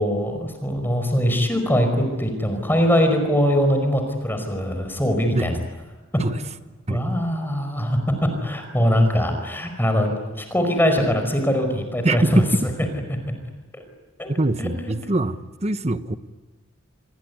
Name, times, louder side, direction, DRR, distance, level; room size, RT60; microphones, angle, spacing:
voice 1, 0.0-5.6 6.9-12.4 13.7-13.8 14.2-14.3 14.6-14.7, equal, 10° left, 5 dB, 5.0 m, -22 dB
voice 2, 14.4-16.2, right 2 dB, 30° right, 11 dB, 1.1 m, -24 dB
28.0 x 21.5 x 9.8 m, 1.2 s
head